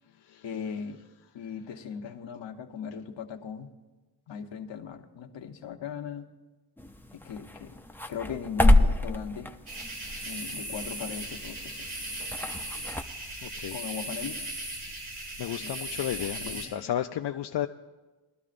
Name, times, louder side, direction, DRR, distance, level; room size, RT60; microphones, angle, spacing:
voice 1, 0.4-1.0 1.3-3.7 4.3-6.3 7.1-7.8 8.1-9.5 10.2-11.9 13.7-14.5 15.6-15.8 16.2-16.9, left 7 dB, 85° left, 4 dB, 1.1 m, -38 dB
sound 1, 6.8-13.0, left 1 dB, 5° left, 0.5 m, -28 dB
sound 2, 9.7-16.7, right 1 dB, 85° right, 4.7 m, -37 dB
voice 2, 13.4-13.8 15.4-17.7, left 11 dB, 70° left, 5 dB, 0.6 m, -32 dB
21.5 x 12.0 x 2.5 m, 1.2 s
cardioid pair, 90°, 43 cm